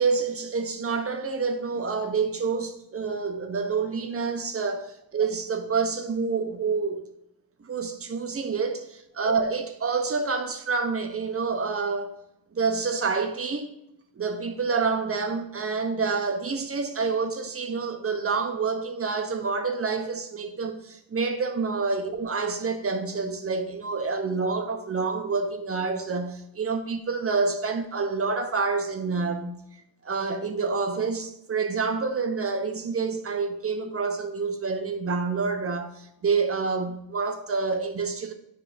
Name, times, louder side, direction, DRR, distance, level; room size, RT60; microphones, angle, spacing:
voice 1, 0.0-7.0 7.6-12.1 12.5-13.7 14.2-29.6 30.0-38.3, right 4 dB, 30° right, 1.1 m, -28 dB
10.0 x 4.8 x 2.8 m
supercardioid pair, 80°, 47 cm